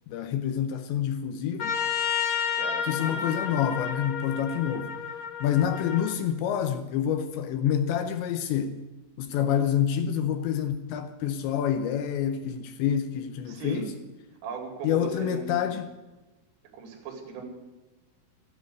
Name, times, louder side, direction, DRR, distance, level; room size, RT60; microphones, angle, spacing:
voice 1, 0.1-1.8 2.8-4.9 5.4-8.8 9.2-13.9 14.8-15.9, left 9 dB, 80° left, 2.8 m, -27 dB
Trumpet, 1.6-6.1, left 8 dB, 60° left, 1.8 m, -31 dB
voice 2, 2.6-3.2 13.5-13.9 14.4-15.8 16.7-17.4, right 5 dB, 80° right, 5.0 m, -37 dB
13.0 x 12.0 x 8.2 m
omnidirectional pair, 5.6 m